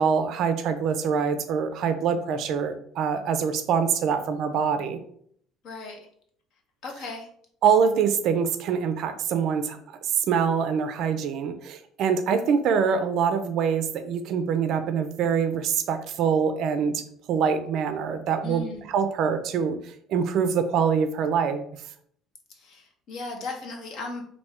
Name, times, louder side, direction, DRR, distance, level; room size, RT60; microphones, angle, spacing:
voice 1, 0.0-5.0 7.6-9.8 10.1-17.0 17.3-21.7, right 6 dB, 50° right, 9 dB, 0.4 m, -24 dB
voice 2, 5.6-6.1 6.8-7.3 18.4-18.9 22.5-24.2, left 3 dB, 45° left, 2 dB, 0.9 m, -36 dB
3.4 x 2.6 x 4.2 m, 0.64 s
cardioid pair, 175°, 0 cm